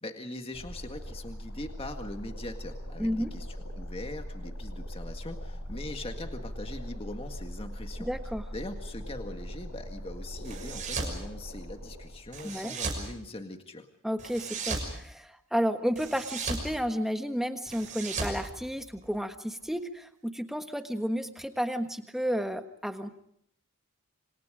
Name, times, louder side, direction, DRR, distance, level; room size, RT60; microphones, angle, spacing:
voice 1, 0.0-8.1 8.5-13.9, left 1 dB, 25° left, 5 dB, 1.9 m, -41 dB
sound 1, 0.5-12.5, equal, 85° left, 6.1 m, -40 dB
voice 2, 3.0-3.3 8.0-8.4 12.4-12.7 14.0-23.1, equal, ahead, 6 dB, 1.4 m, -32 dB
sound 2, 10.4-11.2 12.3-13.1 14.2-14.9 16.0-16.7 17.7-19.2, right 3 dB, 35° right, 6.2 m, -35 dB
29.0 x 26.5 x 5.1 m, 0.71 s
head